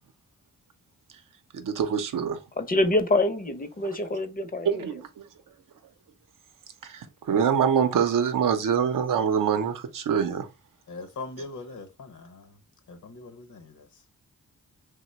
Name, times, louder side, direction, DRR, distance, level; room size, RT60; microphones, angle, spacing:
voice 1, 1.5-2.4 4.6-5.2 6.8-10.5, right 7 dB, 75° right, 0.7 m, -25 dB
voice 2, 2.6-4.9, left 2 dB, 25° left, 0.6 m, -25 dB
voice 3, 10.9-12.6 12.9-14.0, left 3 dB, 60° left, 0.9 m, -41 dB
2.9 x 2.1 x 4.2 m
cardioid pair, 75°, 33 cm